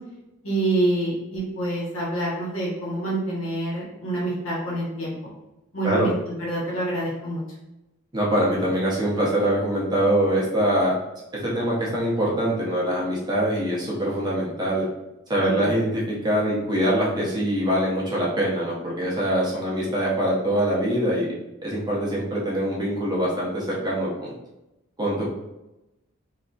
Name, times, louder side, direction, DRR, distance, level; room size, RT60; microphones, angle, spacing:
voice 1, 0.4-5.3 5.7-6.1 6.4-7.4 15.6-15.7, right 1 dB, 85° left, -5 dB, 1.1 m, -27 dB
voice 2, 8.1-10.9 11.4-14.8 15.3-21.3 21.6-24.3 25.0-25.3, right 1 dB, 20° right, -5 dB, 0.6 m, -23 dB
2.7 x 2.5 x 2.3 m, 0.95 s
head